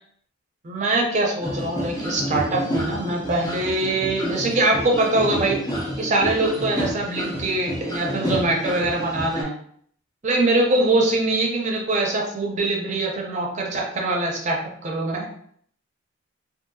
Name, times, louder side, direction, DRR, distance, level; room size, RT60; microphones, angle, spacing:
voice 1, 0.6-5.6 6.0-9.6 10.2-15.3, right 2 dB, 35° right, 0 dB, 0.5 m, -23 dB
sound 1, 1.4-9.4, equal, 20° left, 0.4 m, -29 dB
2.7 x 2.5 x 2.6 m, 0.63 s
head